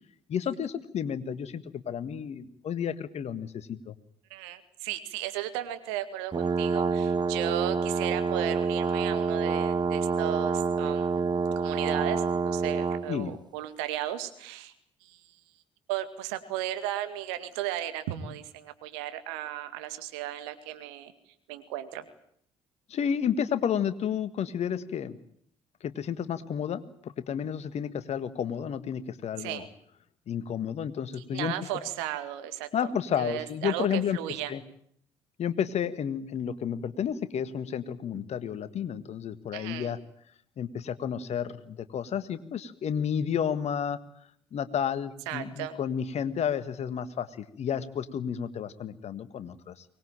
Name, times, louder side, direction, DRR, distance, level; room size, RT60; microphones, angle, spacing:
voice 1, 0.3-3.9 13.1-13.3 22.9-25.2 25.8-29.6 30.3-31.5 32.7-34.2 34.5-34.6 35.4-40.0 40.6-44.0 44.5-49.8, left 8 dB, 50° left, 13 dB, 1.7 m, -31 dB
voice 2, 4.3-11.2 11.6-14.7 15.0-15.2 15.9-21.1 21.5-22.0 29.4-29.7 31.2-32.7 33.2-34.5 39.5-39.9 45.3-45.8, right 12 dB, 70° right, 10 dB, 2.1 m, -35 dB
sound 1, 6.3-13.1, right 5 dB, 30° right, 1.3 m, -27 dB
23.5 x 20.0 x 9.0 m, 0.68 s
figure-of-eight pair, 50°, 14 cm